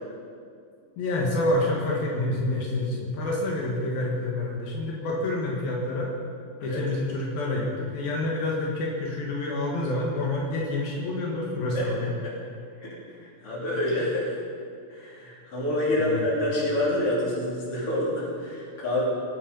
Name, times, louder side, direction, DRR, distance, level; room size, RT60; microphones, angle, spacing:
voice 1, 1.0-6.1 6.6-12.1 16.0-16.3, left 2 dB, 80° left, -2 dB, 3.4 m, -28 dB
voice 2, 12.8-14.3 14.9-19.0, left 1 dB, 40° left, -5 dB, 4.0 m, -27 dB
21.0 x 8.7 x 5.4 m, 2.3 s
omnidirectional pair, 4.2 m